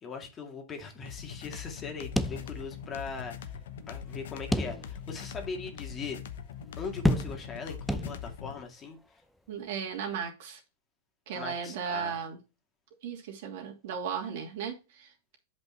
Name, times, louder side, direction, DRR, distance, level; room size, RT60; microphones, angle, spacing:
voice 1, 0.0-3.5 3.9-6.2 6.8-9.0 11.3-12.2, left 5 dB, 25° left, 2.1 m, -40 dB
sound 1, 1.1-8.6, left 8 dB, 75° left, 1.0 m, -42 dB
sound 2, 2.2-3.0 3.3-3.4 4.5-5.2 5.7-5.8 7.0-7.6 7.9-8.5, equal, ahead, 0.6 m, -30 dB
voice 2, 9.5-10.6 11.3-12.4 13.0-15.1, right 7 dB, 65° right, 2.8 m, -36 dB
8.0 x 5.4 x 4.4 m
hypercardioid pair, 115°, 0 cm